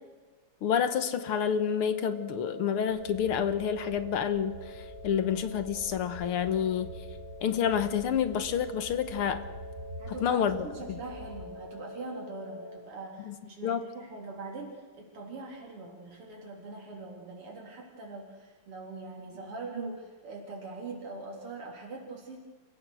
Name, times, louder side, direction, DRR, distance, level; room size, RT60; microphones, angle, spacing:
voice 1, 0.6-4.6 5.0-6.9 7.4-9.4 10.2-11.0 13.3-13.4 13.6-13.9, left 8 dB, 75° left, 10 dB, 2.1 m, -28 dB
sound 1, 0.8-12.8, left 1 dB, 45° left, 5.4 m, -46 dB
sound 2, 2.9-11.5, equal, 40° right, 5.8 m, -47 dB
voice 2, 10.0-22.4, right 3 dB, 85° right, -1 dB, 4.3 m, -42 dB
29.0 x 16.0 x 6.4 m, 1.3 s
omnidirectional pair, 2.4 m